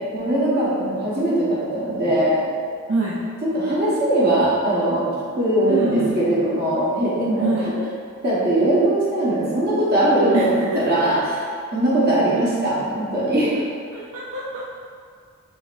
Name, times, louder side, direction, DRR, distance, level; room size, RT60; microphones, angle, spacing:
voice 1, 0.1-2.4 3.5-5.1 5.4-7.5 7.7-7.8 8.2-11.4 11.7-13.5, right 1 dB, 45° right, -8 dB, 1.0 m, -20 dB
voice 2, 2.9-3.3 5.7-6.2 7.4-7.7 10.3-11.2 13.5-13.6 13.9-14.7, right 2 dB, 70° right, -5 dB, 0.4 m, -25 dB
3.9 x 3.9 x 2.5 m, 2.1 s
head